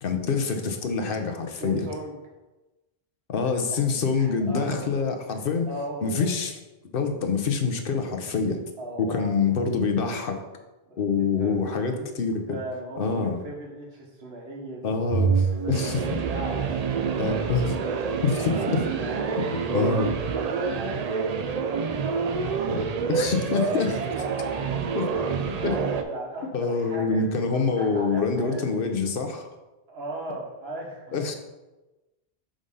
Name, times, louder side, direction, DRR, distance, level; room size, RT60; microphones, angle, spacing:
voice 1, 0.0-1.9 3.3-5.7 6.0-6.5 6.9-8.6 9.0-10.4 11.0-12.6 13.0-13.4 14.8-16.0 17.2-17.6 18.2-18.8 19.7-20.1 22.7-22.8 23.1-24.0 24.9-25.1 25.6-25.9 26.5-29.5 31.1-31.3, left 5 dB, 65° left, 6 dB, 0.9 m, -26 dB
voice 2, 1.4-2.2 4.2-5.1 5.7-6.4 8.8-9.6 10.9-11.6 12.0-12.1 12.5-14.9 15.5-17.4 18.3-22.9 23.8-25.7 26.1-28.6 29.9-31.1, right 1 dB, 75° right, 0 dB, 1.4 m, -38 dB
sound 1, 15.1-26.0, right 5 dB, 55° right, 0.5 m, -27 dB
4.9 x 3.9 x 5.4 m, 1.1 s
omnidirectional pair, 1.1 m